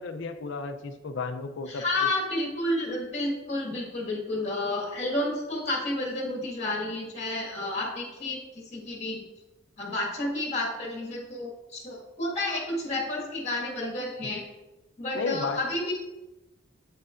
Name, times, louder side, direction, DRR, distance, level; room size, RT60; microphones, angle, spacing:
voice 1, 0.0-2.1 15.1-15.6, left 4 dB, 60° left, 9 dB, 0.5 m, -33 dB
voice 2, 1.7-9.2 9.8-14.4 15.0-15.9, left 1 dB, 35° left, -2 dB, 1.7 m, -31 dB
8.3 x 6.5 x 2.5 m, 1.0 s
head